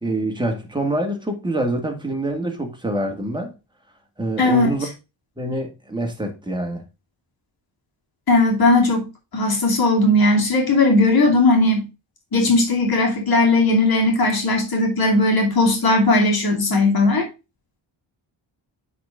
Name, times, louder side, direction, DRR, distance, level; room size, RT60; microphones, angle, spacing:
voice 1, 0.0-3.5 4.2-4.9 5.4-6.8, right 1 dB, 10° right, 2.0 m, -25 dB
voice 2, 4.4-4.7 8.3-11.9 12.3-17.3, left 2 dB, 50° left, 2.7 m, -17 dB
9.2 x 4.2 x 3.7 m
cardioid pair, 110°, 46 cm